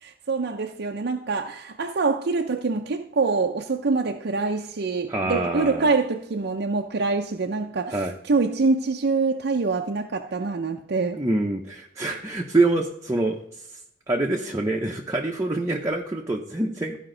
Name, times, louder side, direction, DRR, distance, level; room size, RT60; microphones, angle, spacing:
voice 1, 0.0-11.2, right 4 dB, 60° right, 0.6 m, -25 dB
voice 2, 5.1-5.9 7.9-8.1 11.2-13.4 14.1-17.0, right 2 dB, 15° right, 0.8 m, -25 dB
14.0 x 5.2 x 3.8 m
head